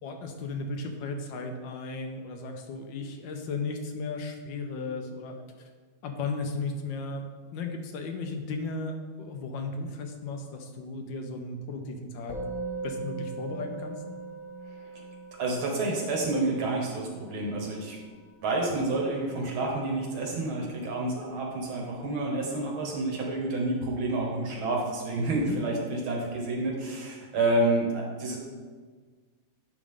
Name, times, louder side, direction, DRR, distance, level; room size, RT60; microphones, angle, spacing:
voice 1, 0.0-5.7 6.0-7.3 7.5-12.4 12.8-14.0 25.4-25.6, left 3 dB, 70° left, 5 dB, 1.3 m, -35 dB
Musical instrument, 12.3-21.8, right 3 dB, 35° left, 0.5 m, -41 dB
voice 2, 15.4-18.0 18.4-28.4, right 2 dB, 80° right, -1 dB, 2.1 m, -29 dB
8.3 x 5.0 x 3.6 m, 1.5 s
omnidirectional pair, 2.2 m